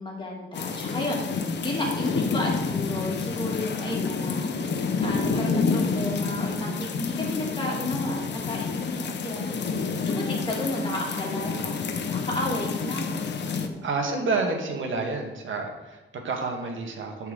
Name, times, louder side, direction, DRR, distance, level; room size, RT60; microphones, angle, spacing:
voice 1, 0.0-4.5 5.0-11.8 12.1-13.3 13.6-14.3, left 1 dB, 25° left, -2 dB, 2.5 m, -32 dB
sound 1, 0.5-13.7, left 5 dB, 65° left, 1.0 m, -29 dB
voice 2, 9.6-10.0 13.8-17.3, right 3 dB, 85° right, 3 dB, 1.7 m, -30 dB
9.7 x 4.7 x 7.8 m, 1.1 s
wide cardioid pair, 145°, 20 cm